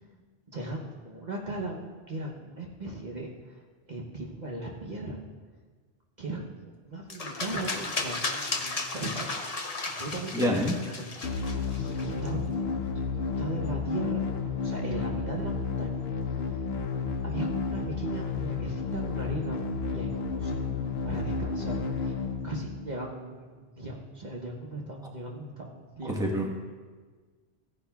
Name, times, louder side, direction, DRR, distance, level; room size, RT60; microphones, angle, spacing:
voice 1, 0.5-3.6 3.9-5.2 6.2-9.4 9.8-11.4 11.8-14.2 14.6-16.7 17.2-20.7 21.0-26.5, right 1 dB, 45° right, -2 dB, 1.0 m, -38 dB
sound 1, 7.1-12.3, left 3 dB, 40° left, 0.9 m, -34 dB
voice 2, 10.3-10.7 26.0-26.5, equal, 5° right, -1 dB, 1.1 m, -26 dB
sound 2, 11.2-23.2, left 4 dB, 70° left, 1.0 m, -31 dB
15.5 x 10.0 x 2.3 m, 1.5 s
omnidirectional pair, 1.1 m